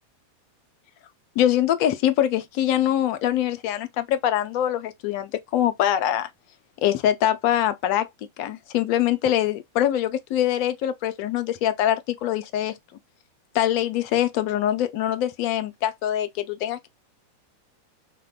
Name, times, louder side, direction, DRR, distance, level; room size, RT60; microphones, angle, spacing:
voice 1, 1.4-6.3 6.8-8.1 8.4-12.7 13.5-16.9, left 11 dB, 45° left, 0.4 m, -23 dB
3.3 x 2.3 x 2.3 m
figure-of-eight pair, 90°, 0 cm